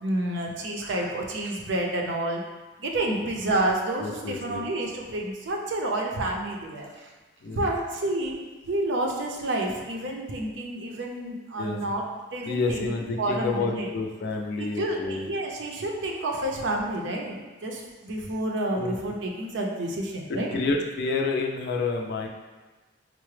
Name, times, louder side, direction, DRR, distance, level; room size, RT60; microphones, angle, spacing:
voice 1, 0.0-2.4 2.8-7.1 7.5-12.0 12.3-12.9 13.2-13.9 14.6-20.6, right 1 dB, 65° right, 0 dB, 0.5 m, -29 dB
voice 2, 4.0-4.6 7.4-7.7 11.6-12.0 12.5-15.3 18.7-18.9 20.3-22.3, left 3 dB, 55° left, 1 dB, 0.4 m, -29 dB
4.6 x 2.0 x 3.1 m, 1.3 s
head